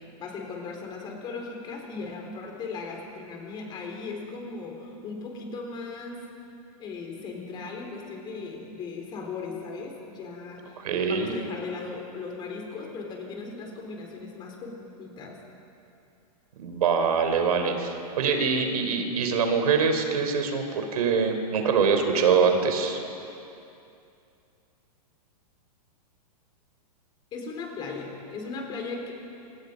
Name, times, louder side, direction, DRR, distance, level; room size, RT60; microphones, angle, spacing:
voice 1, 0.0-6.3 6.8-15.4 27.3-29.1, left 4 dB, 25° left, 1 dB, 4.3 m, -37 dB
voice 2, 10.8-11.3 16.6-23.0, right 5 dB, 70° right, 5 dB, 4.0 m, -24 dB
28.5 x 27.0 x 5.4 m, 2.7 s
supercardioid pair, 160°, 20 cm